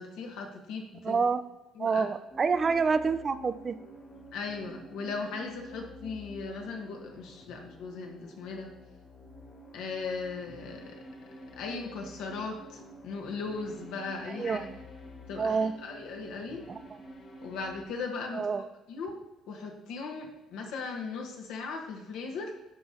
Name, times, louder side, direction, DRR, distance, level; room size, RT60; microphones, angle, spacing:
voice 1, 0.0-1.2 1.7-2.0 4.3-8.7 9.7-11.0 11.6-14.7 15.3-16.6 17.4-18.5 18.9-19.2 19.5-22.6, left 4 dB, 80° left, 2 dB, 1.1 m, -38 dB
voice 2, 1.0-1.4 1.8-3.8 14.4-14.6 15.4-15.7 16.7-16.8 18.3-18.6, right 5 dB, 40° right, 11 dB, 0.4 m, -27 dB
sound 1, 2.3-17.8, equal, 50° left, 1.8 m, -49 dB
10.5 x 3.6 x 2.8 m, 1.0 s
supercardioid pair, 80°, 0 cm